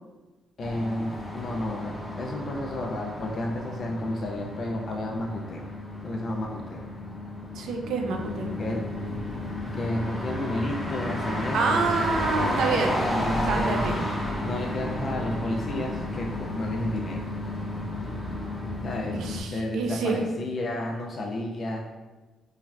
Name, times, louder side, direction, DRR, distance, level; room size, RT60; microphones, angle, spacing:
voice 1, 0.6-5.7 6.0-6.8 8.6-8.8 9.7-12.6 13.0-13.8 14.4-17.3 18.8-19.2 19.5-22.0, left 1 dB, 50° left, 0 dB, 0.3 m, -32 dB
sound 1, 0.6-19.4, left 1 dB, ahead, 0.7 m, -32 dB
voice 2, 7.6-8.5 11.5-12.9 13.5-13.9 19.1-20.2, right 4 dB, 80° right, 3 dB, 0.4 m, -27 dB
3.1 x 2.2 x 2.3 m, 1.2 s
cardioid pair, 90°, 0 cm